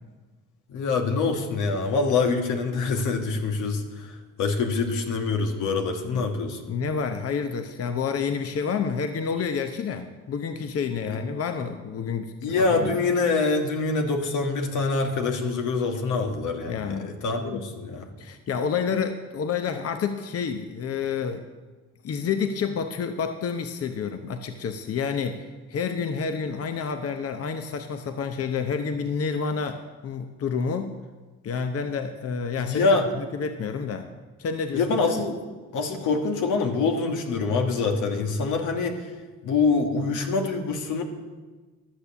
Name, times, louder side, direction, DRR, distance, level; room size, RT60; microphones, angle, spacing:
voice 1, 0.7-6.6 11.1-11.2 12.4-18.1 32.6-33.1 34.7-35.4 35.7-39.1 39.4-41.0, left 4 dB, 85° left, 4 dB, 1.7 m, -25 dB
voice 2, 6.7-13.0 16.7-17.1 17.4-17.6 18.2-21.4 22.0-30.9 31.4-32.9 33.2-34.1 34.4-34.9, left 6 dB, 50° left, 7 dB, 0.9 m, -29 dB
13.0 x 6.8 x 7.1 m, 1.3 s
cardioid pair, 90°, 30 cm